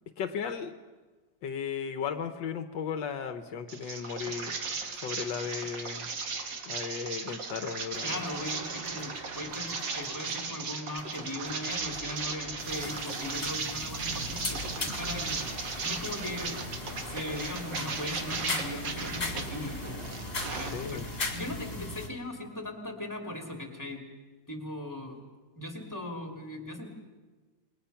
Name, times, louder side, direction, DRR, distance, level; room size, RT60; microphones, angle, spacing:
voice 1, 0.2-0.7 1.4-4.6 5.0-6.1 6.6-8.2 20.6-21.1, left 7 dB, 75° left, 8 dB, 1.6 m, -35 dB
sound 1, 3.7-19.4 19.9-21.2, right 4 dB, 70° right, 2.4 m, -37 dB
sound 2, 7.9-21.8, right 3 dB, 35° right, 1.2 m, -45 dB
voice 2, 8.0-15.5 15.8-16.6 17.0-20.1 20.4-24.0 24.5-25.2 25.6-26.9, left 1 dB, 10° left, 2 dB, 3.2 m, -39 dB
sound 3, 12.6-22.1, left 2 dB, 30° left, 2.6 m, -38 dB
27.5 x 22.0 x 5.8 m, 1.3 s
omnidirectional pair, 2.0 m